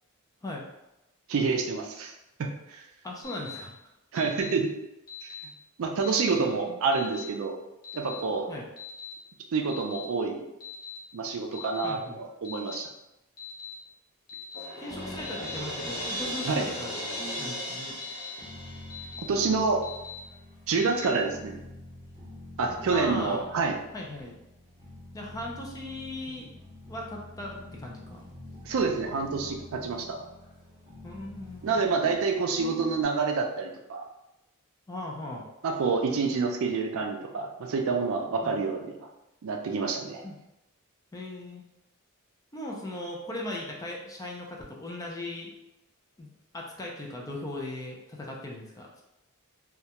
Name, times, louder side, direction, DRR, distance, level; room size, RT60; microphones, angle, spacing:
voice 1, 1.3-2.1 2.4-2.8 4.1-4.7 5.8-7.6 7.9-8.5 9.5-10.5 11.1-12.9 16.4-16.5 19.3-19.8 20.7-21.6 22.6-23.8 28.7-30.3 31.6-34.1 35.6-39.0 39.4-40.2, right 4 dB, 65° right, 2 dB, 0.4 m, -28 dB
voice 2, 3.0-3.7 6.3-6.8 8.5-8.7 11.8-12.2 14.8-16.9 17.4-18.0 22.9-23.5 23.9-24.4 25.1-26.5 26.9-28.2 31.0-31.8 34.9-35.5 38.4-38.6 40.2-40.4 41.1-41.6 42.5-45.5 46.2-49.0, left 1 dB, 15° left, -2 dB, 0.4 m, -38 dB
Alarm, 3.2-3.6 4.2-4.5 5.1-5.4 6.0-6.4 6.9-7.3 7.8-8.2 8.8-9.1 9.7-10.0 10.6-11.0 11.5-11.9 12.4-12.8 13.4-13.7 14.3-14.7 15.2-15.6 16.1-16.5 17.1-17.4 18.0-18.3 18.9-19.3 19.8-20.2 20.7-21.1, left 9 dB, 40° left, 0.7 m, -42 dB
Crash cymbal, 14.5-19.5, equal, 85° left, 0.7 m, -37 dB
sound 1, 14.9-33.1, equal, 25° right, 0.7 m, -46 dB
2.3 x 2.1 x 2.8 m, 0.92 s
head